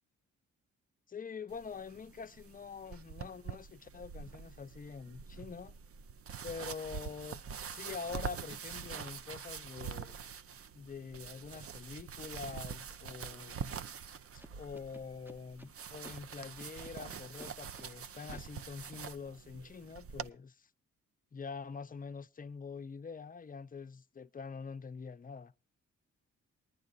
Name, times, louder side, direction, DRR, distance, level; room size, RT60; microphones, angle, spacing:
voice 1, 1.1-5.7 6.4-7.4 7.7-10.2 10.7-13.8 14.3-20.7 21.3-25.5, left 5 dB, 25° left, 0.6 m, -45 dB
sound 1, 1.5-20.3, right 7 dB, 45° right, 0.6 m, -45 dB
Scratching (performance technique), 14.4-15.7 16.0-16.2 16.6-17.9 18.3-18.4, right 1 dB, 5° right, 0.8 m, -52 dB
19.5 x 10.5 x 2.5 m
cardioid pair, 65°, 33 cm